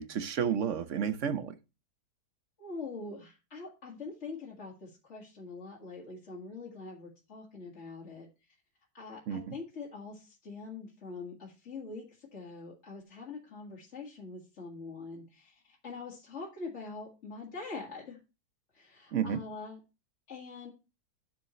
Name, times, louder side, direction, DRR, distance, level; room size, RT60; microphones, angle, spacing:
voice 1, 0.0-1.6 9.3-9.5 19.1-19.4, right 8 dB, 55° right, 1.0 m, -31 dB
voice 2, 2.6-8.3 8.9-18.2 18.7-19.8 20.3-20.7, left 4 dB, 45° left, 2.3 m, -44 dB
10.5 x 6.7 x 3.1 m
omnidirectional pair, 1.7 m